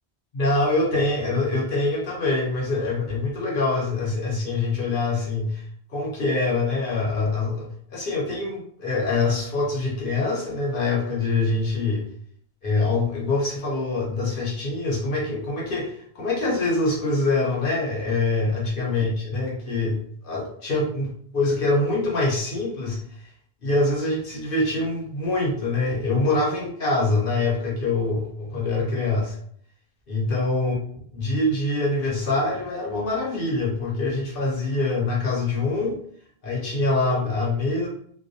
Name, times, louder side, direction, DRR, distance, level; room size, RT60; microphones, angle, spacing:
voice 1, 0.3-5.6 5.9-12.1 12.6-21.1 21.3-23.3 23.6-29.4 30.1-30.8 31.1-36.0 36.4-37.9, left 2 dB, 65° left, -3 dB, 0.8 m, -24 dB
2.3 x 2.1 x 2.6 m, 0.62 s
omnidirectional pair, 1.0 m